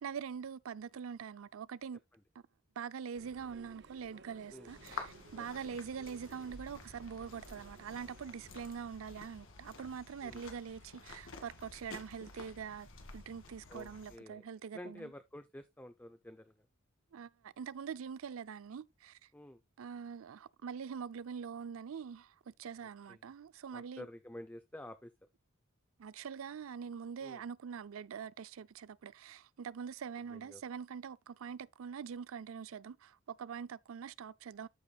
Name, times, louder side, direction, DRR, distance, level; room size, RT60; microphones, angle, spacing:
voice 1, 0.0-2.0 2.8-12.9 13.1-15.1 17.1-19.3 19.8-24.1 26.0-34.7, right 6 dB, 85° right, 0.4 m, -44 dB
sound 1, 3.1-8.8, right 3 dB, 60° right, 0.8 m, -57 dB
sound 2, 4.7-14.2, left 3 dB, 70° left, 1.8 m, -51 dB
voice 2, 5.4-5.8 10.2-10.5 13.7-14.4 14.7-16.6 19.3-19.6 23.1-23.2 23.7-25.1 27.2-27.4 30.3-30.6, left 1 dB, 10° left, 0.5 m, -50 dB
13.5 x 4.9 x 2.3 m
head